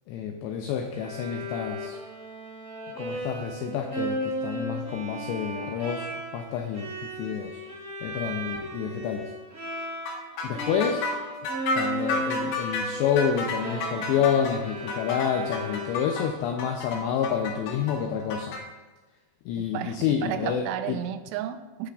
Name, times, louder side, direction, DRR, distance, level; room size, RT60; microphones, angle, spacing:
voice 1, 0.1-2.0 3.0-6.1 6.3-7.6 8.0-9.3 10.4-11.1 11.8-18.6 19.5-21.0, left 8 dB, 90° left, 4 dB, 2.4 m, -28 dB
Bowed string instrument, 0.9-10.3 10.5-16.4, right 1 dB, 65° right, 1.1 m, -35 dB
sound 1, 10.1-18.6, left 3 dB, 70° left, 2.5 m, -31 dB
voice 2, 19.6-21.9, right 10 dB, 90° right, 9 dB, 3.1 m, -33 dB
16.0 x 5.8 x 2.4 m, 1.2 s
omnidirectional pair, 5.6 m